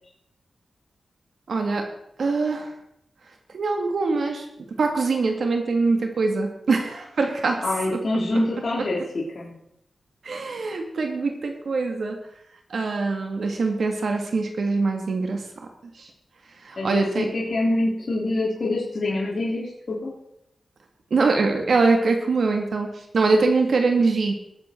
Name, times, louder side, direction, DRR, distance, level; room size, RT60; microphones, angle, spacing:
voice 1, 1.5-1.9 2.2-2.7 3.5-4.4 4.8-7.6 10.2-12.2 12.7-15.4 16.6-17.3 21.1-22.9 23.1-24.3, right 3 dB, 70° right, 4 dB, 1.9 m, -23 dB
voice 2, 7.6-9.5 16.8-20.1, left 2 dB, 55° left, -5 dB, 3.4 m, -26 dB
20.5 x 7.7 x 4.4 m, 0.78 s
wide cardioid pair, 80°, 0 cm